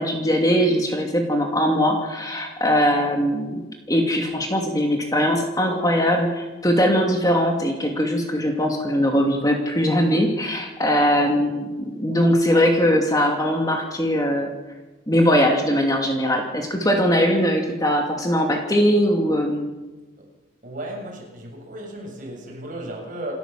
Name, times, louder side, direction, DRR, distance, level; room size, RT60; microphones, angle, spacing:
voice 1, 0.0-14.5 15.1-19.7, equal, 20° left, 2.6 m, -21 dB
voice 2, 20.6-23.3, right 1 dB, 40° right, 7.4 m, -35 dB
28.5 x 13.5 x 7.6 m
head